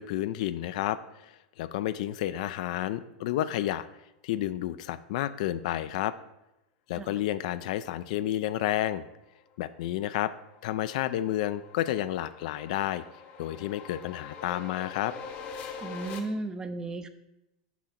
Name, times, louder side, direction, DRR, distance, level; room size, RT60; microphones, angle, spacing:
voice 1, 0.0-3.9 4.2-6.1 6.9-9.0 9.6-10.3 10.6-13.0 13.4-15.1, left 13 dB, 65° left, 13 dB, 0.4 m, -31 dB
sound 1, 9.8-16.2, left 6 dB, 40° left, 0.9 m, -44 dB
voice 2, 15.8-17.1, right 2 dB, 15° right, 11 dB, 0.4 m, -35 dB
6.1 x 5.2 x 4.2 m, 0.89 s
supercardioid pair, 135°, 4 cm